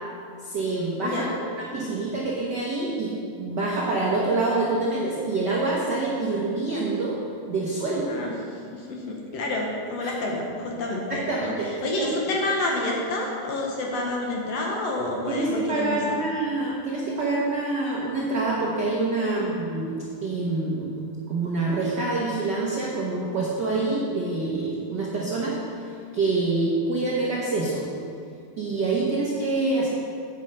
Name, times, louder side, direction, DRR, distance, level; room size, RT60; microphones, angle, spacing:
voice 1, 0.4-3.1 3.4-7.2 7.5-8.1 10.0-10.1 11.1-12.1 15.3-21.0 21.3-25.6 26.1-27.9 28.6-29.9, right 3 dB, 75° right, -5 dB, 1.0 m, -26 dB
voice 2, 1.0-1.3 8.1-8.3 8.7-15.9 19.4-19.5, left 2 dB, 65° left, -1 dB, 1.8 m, -29 dB
9.0 x 6.5 x 5.2 m, 2.3 s
omnidirectional pair, 3.6 m